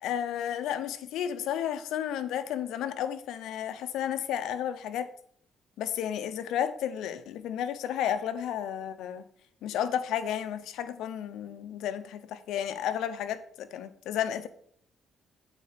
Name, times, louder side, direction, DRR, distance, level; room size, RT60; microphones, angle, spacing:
voice 1, 0.0-5.1 5.8-9.2 9.6-14.5, left 9 dB, 85° left, 11 dB, 0.8 m, -32 dB
8.3 x 4.5 x 6.8 m, 0.62 s
cardioid pair, 90°, 0 cm